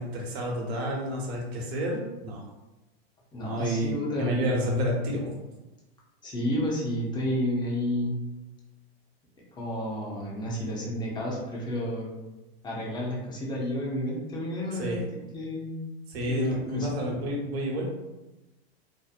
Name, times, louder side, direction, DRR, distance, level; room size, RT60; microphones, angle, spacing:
voice 1, 0.0-2.4 3.4-5.3 14.7-15.0 16.1-17.9, equal, 75° right, -1 dB, 0.9 m, -30 dB
voice 2, 3.3-4.5 6.2-8.2 9.6-12.1 12.6-15.0 15.3-15.8 16.2-16.9, equal, 15° left, -3 dB, 0.5 m, -31 dB
2.7 x 2.0 x 2.4 m, 1.0 s
supercardioid pair, 135°, 31 cm